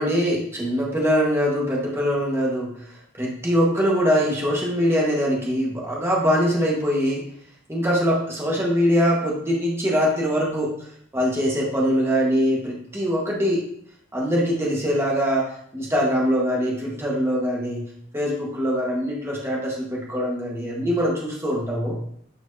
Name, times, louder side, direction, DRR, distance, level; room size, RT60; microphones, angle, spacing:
voice 1, 0.0-2.7 3.2-7.2 7.7-10.7 11.1-13.6 14.1-15.5 15.7-17.8 18.1-22.0, equal, 15° right, -3 dB, 1.5 m, -22 dB
9.8 x 4.5 x 2.8 m, 0.64 s
head